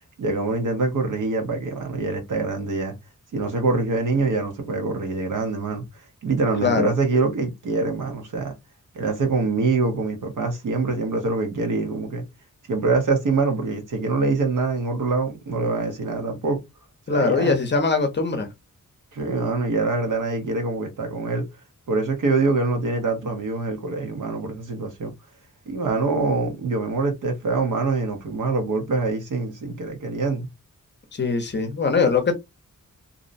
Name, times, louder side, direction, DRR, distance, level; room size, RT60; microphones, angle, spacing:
voice 1, 0.2-2.9 3.3-5.8 6.2-8.5 8.9-12.2 12.7-16.6 17.1-17.6 19.1-21.4 21.9-25.1 25.7-30.5, right 3 dB, 75° right, 0.8 m, -24 dB
voice 2, 6.6-6.9 17.1-18.5 31.1-32.3, left 4 dB, 35° left, 0.6 m, -21 dB
2.6 x 2.1 x 2.5 m
wide cardioid pair, 130°, 31 cm